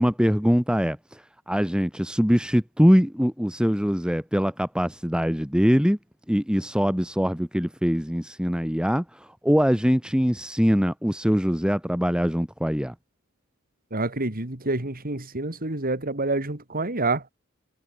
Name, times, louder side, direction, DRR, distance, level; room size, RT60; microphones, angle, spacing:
voice 1, 0.0-6.0 6.3-12.9, equal, 5° right, 3.7 m, -23 dB
voice 2, 13.9-17.3, right 2 dB, 40° right, 3.1 m, -27 dB
head